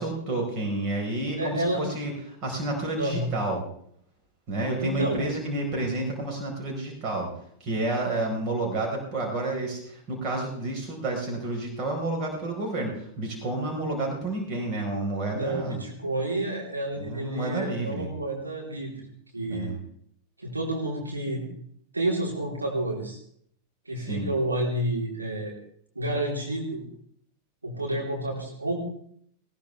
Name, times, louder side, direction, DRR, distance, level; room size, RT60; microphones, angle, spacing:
voice 1, 0.0-3.6 4.5-7.3 7.6-15.8 17.0-18.1 19.5-19.8 24.0-24.3, right 2 dB, 40° right, 1 dB, 4.3 m, -30 dB
voice 2, 1.4-1.8 3.0-3.3 4.8-5.2 15.3-19.1 19.3-19.7 20.4-21.5 21.9-23.2 23.9-25.5 26.0-26.8 27.6-28.8, right 1 dB, 80° right, -2 dB, 3.4 m, -30 dB
19.5 x 18.0 x 3.3 m, 0.65 s
figure-of-eight pair, 90°, 0 cm